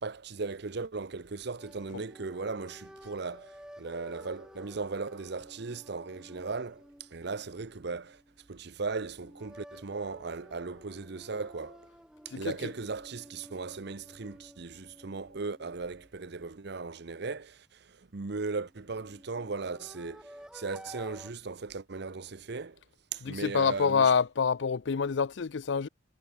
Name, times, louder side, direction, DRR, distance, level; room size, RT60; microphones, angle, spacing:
voice 1, 0.0-8.2 8.5-11.9 12.2-22.8 23.1-24.1, right 4 dB, 60° right, 0.8 m, -37 dB
sound 1, 1.6-8.7 9.1-17.0 18.7-21.3, equal, 5° right, 6.2 m, -53 dB
voice 2, 12.3-12.7 23.2-25.9, left 6 dB, 70° left, 0.5 m, -27 dB
head